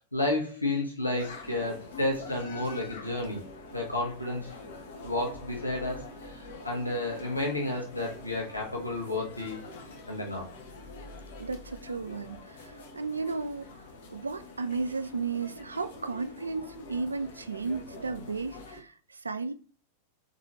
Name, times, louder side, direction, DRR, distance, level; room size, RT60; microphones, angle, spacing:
voice 1, 0.1-3.4 3.7-4.5 5.0-9.6 10.1-10.5, left 2 dB, 85° left, 0.9 m, -31 dB
sound 1, 1.1-18.8, left 2 dB, 55° left, 0.7 m, -46 dB
voice 2, 11.4-19.5, right 4 dB, 75° right, 0.3 m, -34 dB
4.1 x 2.6 x 3.0 m
figure-of-eight pair, 90°, 0 cm